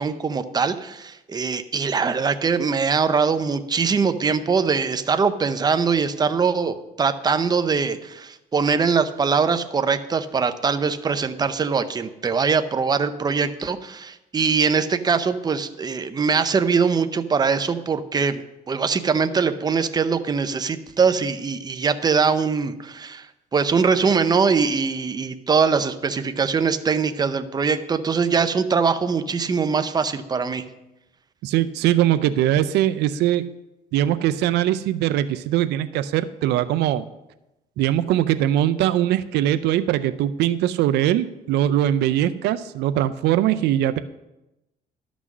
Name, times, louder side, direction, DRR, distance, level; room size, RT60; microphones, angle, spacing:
voice 1, 0.0-18.4 18.7-23.3 23.5-30.6, right 5 dB, 25° right, 10 dB, 0.7 m, -22 dB
voice 2, 31.4-33.4 33.9-37.0 37.8-44.0, right 12 dB, 80° right, 12 dB, 0.5 m, -21 dB
12.0 x 6.1 x 6.1 m, 0.95 s
cardioid pair, 110°, 17 cm